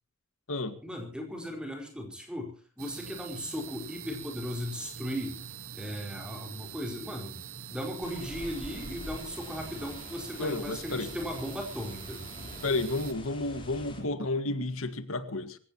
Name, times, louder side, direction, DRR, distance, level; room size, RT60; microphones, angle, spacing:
voice 1, 0.8-5.4 5.7-7.4 7.7-12.2, equal, 5° right, 4.5 m, -37 dB
sound 1, 2.8-13.1, right 8 dB, 75° right, 1.4 m, -44 dB
sound 2, 8.0-14.0, left 1 dB, 25° left, 3.9 m, -46 dB
voice 2, 10.4-11.1 12.6-15.6, left 2 dB, 70° left, 1.8 m, -31 dB
25.5 x 15.5 x 3.0 m
head